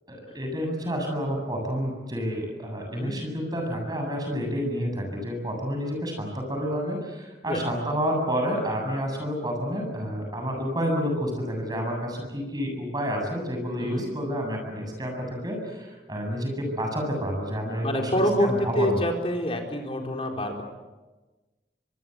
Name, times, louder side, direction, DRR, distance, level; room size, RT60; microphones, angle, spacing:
voice 1, 0.1-19.0, equal, 25° right, 2 dB, 7.8 m, -29 dB
voice 2, 17.8-20.6, equal, 35° left, 2 dB, 4.3 m, -26 dB
25.0 x 23.5 x 8.1 m, 1.2 s
head